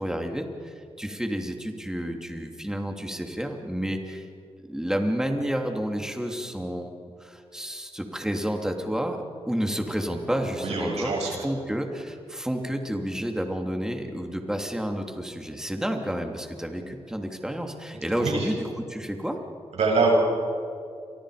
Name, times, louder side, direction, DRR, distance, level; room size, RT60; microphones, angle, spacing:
voice 1, 0.0-4.3 4.7-6.9 7.2-19.4, equal, 5° right, 3 dB, 3.0 m, -30 dB
voice 2, 10.6-11.4 18.2-18.5 19.7-20.1, right 4 dB, 85° right, -2 dB, 7.9 m, -25 dB
29.5 x 24.0 x 5.1 m, 2.4 s
cardioid pair, 70°, 11 cm